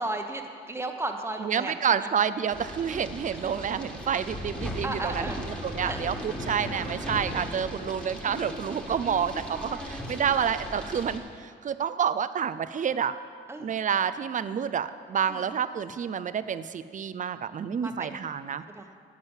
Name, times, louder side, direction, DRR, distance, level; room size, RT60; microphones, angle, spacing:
voice 1, 0.0-2.1 2.9-3.1 3.4-3.5 4.8-5.4 5.8-6.1 10.1-10.3 13.5-13.7 15.3-15.4 17.8-18.2 18.7-18.9, right 2 dB, 10° right, 4 dB, 1.1 m, -35 dB
voice 2, 1.4-5.3 5.6-13.1 13.6-18.6, right 8 dB, 40° right, 13 dB, 0.5 m, -29 dB
sound 1, 2.5-11.2, equal, 5° left, 1.8 m, -37 dB
11.0 x 7.7 x 7.3 m, 2.1 s
cardioid pair, 90°, 20 cm